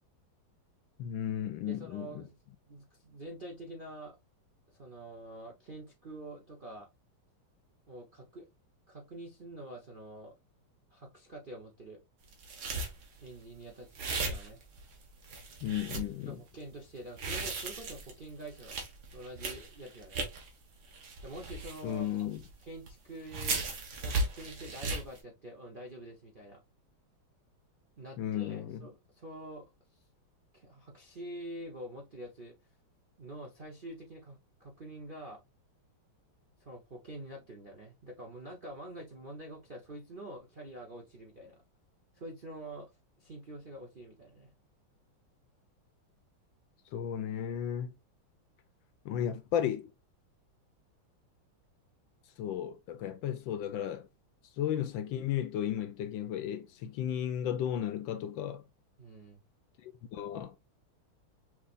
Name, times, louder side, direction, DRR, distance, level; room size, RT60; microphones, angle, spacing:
voice 1, 1.0-2.2 15.6-16.4 21.8-22.4 28.2-28.8 46.9-47.9 49.0-49.9 52.4-54.1 54.6-58.6 59.8-60.5, left 10 dB, 75° left, 1.3 m, -34 dB
voice 2, 1.7-2.4 2.7-4.2 4.7-6.9 7.9-8.5 8.9-10.3 10.9-12.0 13.2-14.6 16.3-18.7 19.1-20.3 21.2-22.1 22.6-23.7 24.0-26.6 28.0-29.7 30.5-32.6 33.2-35.4 36.6-41.6 42.1-42.9 43.2-44.5 59.0-59.4, right 1 dB, 50° right, 0.6 m, -46 dB
sound 1, 12.3-13.3 14.0-14.9 15.2-16.1 17.0-20.5 20.9-22.5 22.9-23.0 23.3-25.2, right 3 dB, 65° right, 2.0 m, -36 dB
6.0 x 3.1 x 2.4 m
omnidirectional pair, 2.3 m